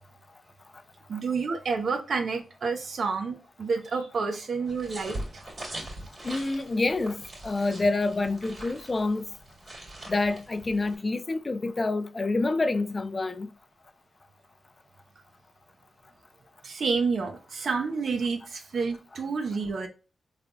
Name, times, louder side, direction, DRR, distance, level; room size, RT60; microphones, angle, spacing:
voice 1, 1.1-5.4 16.6-19.9, right 4 dB, 70° right, 0.7 m, -29 dB
sound 1, 4.7-11.0, right 1 dB, 50° right, 2.0 m, -42 dB
voice 2, 6.2-9.2 10.1-13.5, left 3 dB, 40° left, 0.4 m, -27 dB
3.8 x 3.3 x 2.2 m
cardioid pair, 55°, 0 cm